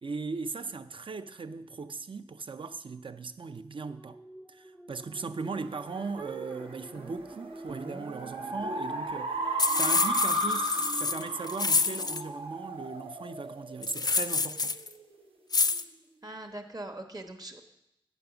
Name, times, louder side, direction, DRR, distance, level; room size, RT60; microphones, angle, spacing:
voice 1, 0.0-4.2 4.5-14.8, right 4 dB, 70° right, 0.4 m, -38 dB
sound 1, 3.9-13.7 14.2-14.4, right 1 dB, 10° right, 0.5 m, -49 dB
sound 2, 5.5-14.4, right 1 dB, 90° right, 1.0 m, -35 dB
sound 3, 9.6-12.2 13.8-14.9 15.5-15.8, left 4 dB, 45° left, 0.3 m, -27 dB
voice 2, 16.2-17.6, right 1 dB, 45° right, 1.0 m, -41 dB
9.4 x 5.2 x 6.9 m
wide cardioid pair, 80°, 9 cm